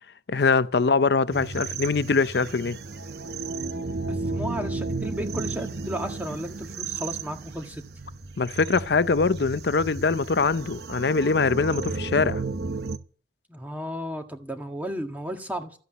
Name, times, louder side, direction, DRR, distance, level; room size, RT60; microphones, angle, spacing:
voice 1, 0.3-2.8 8.4-12.4, left 4 dB, 70° left, 0.6 m, -23 dB
sound 1, 1.3-13.0, right 3 dB, 65° right, 1.0 m, -33 dB
voice 2, 4.1-7.8 13.5-15.8, equal, 10° right, 1.7 m, -34 dB
14.5 x 8.3 x 8.9 m
head